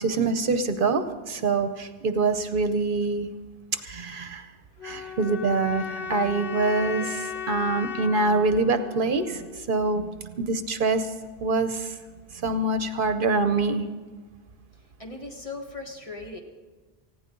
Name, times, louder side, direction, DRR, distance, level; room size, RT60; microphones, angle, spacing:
voice 1, 0.0-3.3 3.8-4.5 4.8-11.1 11.4-12.0 12.3-13.8, right 3 dB, 60° right, 9 dB, 0.9 m, -25 dB
sound 1, 4.8-9.8, left 7 dB, 65° left, 0.8 m, -36 dB
voice 2, 6.8-7.1 14.7-16.4, left 3 dB, 35° left, 1 dB, 1.6 m, -39 dB
19.0 x 15.5 x 3.8 m, 1.3 s
omnidirectional pair, 1.0 m